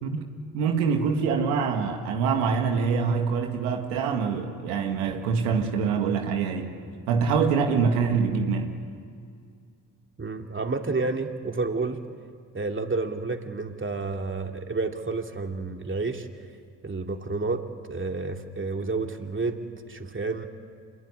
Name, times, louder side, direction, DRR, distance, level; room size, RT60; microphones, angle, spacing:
voice 1, 0.5-6.8 7.1-8.7, right 5 dB, 85° right, 4 dB, 2.1 m, -25 dB
voice 2, 10.2-12.0 12.5-16.3 16.8-17.6 17.9-20.5, right 3 dB, 25° right, 4 dB, 2.7 m, -30 dB
27.0 x 22.0 x 9.9 m, 2.2 s
hypercardioid pair, 50°, 44 cm